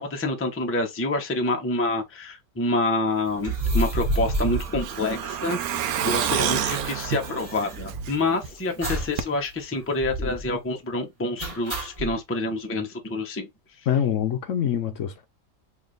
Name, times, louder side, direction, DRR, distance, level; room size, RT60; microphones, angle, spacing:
voice 1, 0.0-13.5, left 2 dB, 15° left, 0.5 m, -27 dB
sound 1, 3.4-5.6 5.9-6.0 6.2-8.3 8.8-9.2 9.5-9.6 10.0-10.5 11.4-12.1, right 1 dB, 25° right, 1.2 m, -29 dB
Truck, 3.8-8.5 8.8-8.9 9.2-9.3, right 9 dB, 85° right, 1.1 m, -29 dB
voice 2, 13.9-15.2, left 9 dB, 65° left, 0.9 m, -25 dB
3.1 x 2.7 x 3.8 m
omnidirectional pair, 1.5 m